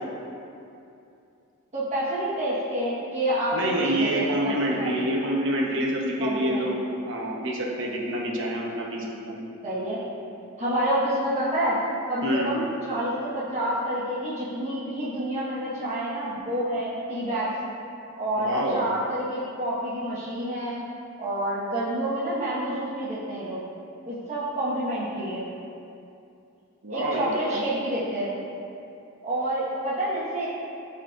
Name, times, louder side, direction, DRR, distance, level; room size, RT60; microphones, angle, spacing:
voice 1, 1.7-5.0 6.2-6.6 9.6-10.0 10.6-11.8 12.1-17.5 18.2-20.8 21.2-23.6 24.1-25.4 26.9-28.3 29.2-30.5, right 1 dB, 30° right, -10 dB, 1.4 m, -28 dB
voice 2, 3.5-6.8 7.1-9.4 12.2-12.5 18.4-18.8 26.8-27.6, right 1 dB, 60° right, -2 dB, 1.0 m, -27 dB
12.5 x 4.3 x 2.6 m, 2.6 s
head